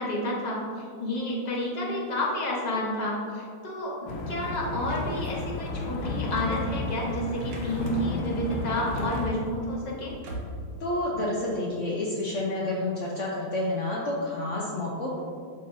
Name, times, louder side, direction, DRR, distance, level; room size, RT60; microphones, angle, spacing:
voice 1, 0.0-10.1, left 1 dB, 30° left, -4 dB, 0.9 m, -30 dB
sound 1, 4.1-9.3, left 2 dB, 90° left, 1.6 m, -33 dB
sound 2, 4.8-10.8, equal, 80° right, 1.9 m, -39 dB
voice 2, 10.8-15.2, left 1 dB, 70° left, -3 dB, 0.7 m, -29 dB
12.0 x 3.9 x 2.7 m, 2.2 s
omnidirectional pair, 2.3 m